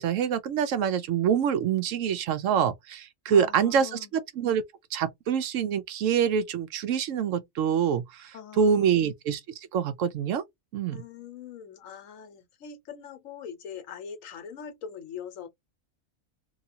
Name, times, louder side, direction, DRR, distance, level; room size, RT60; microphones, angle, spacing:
voice 1, 0.0-4.6 4.9-9.4 9.7-10.4 10.7-11.0, right 7 dB, 70° right, 0.9 m, -26 dB
voice 2, 3.3-4.1 8.3-9.0 10.9-15.5, left 7 dB, 70° left, 1.1 m, -42 dB
2.9 x 2.3 x 2.7 m
omnidirectional pair, 1.4 m